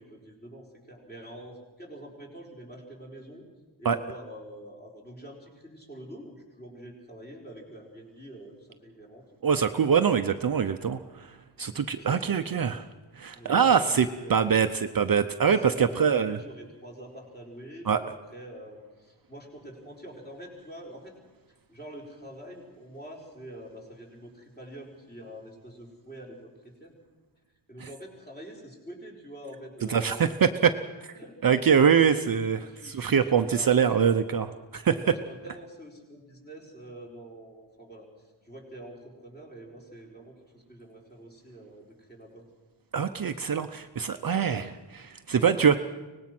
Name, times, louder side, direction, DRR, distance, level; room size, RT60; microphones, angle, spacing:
voice 1, 0.0-3.4 3.8-9.2 11.9-12.3 13.3-14.8 15.5-21.2 21.7-26.9 27.7-30.5 31.1-32.2 32.6-34.4 34.9-38.1 38.4-42.5, equal, 20° left, -1 dB, 4.5 m, -45 dB
voice 2, 9.4-11.3 11.6-12.9 13.2-14.7 14.9-16.4 17.9-18.0 29.9-30.7 31.0-31.1 31.4-34.5 34.7-35.0 42.9-45.8, right 7 dB, 50° right, 8 dB, 0.7 m, -24 dB
24.5 x 19.0 x 6.1 m, 1.2 s
wide cardioid pair, 165°, 46 cm